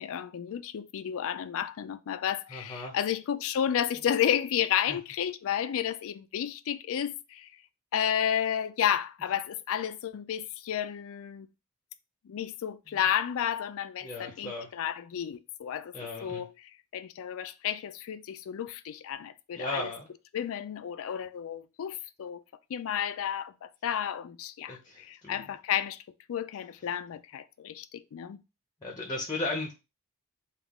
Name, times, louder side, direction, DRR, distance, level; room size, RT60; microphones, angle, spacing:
voice 1, 0.0-7.5 7.9-11.5 12.2-15.9 16.2-19.9 20.3-22.4 22.7-26.0 26.3-28.4, left 9 dB, 65° left, 0.3 m, -32 dB
voice 2, 2.5-3.0 12.9-13.0 14.0-14.7 15.9-16.4 19.5-20.1 24.7-25.5 28.8-29.7, left 2 dB, 20° left, 0.7 m, -36 dB
3.5 x 2.4 x 3.5 m
head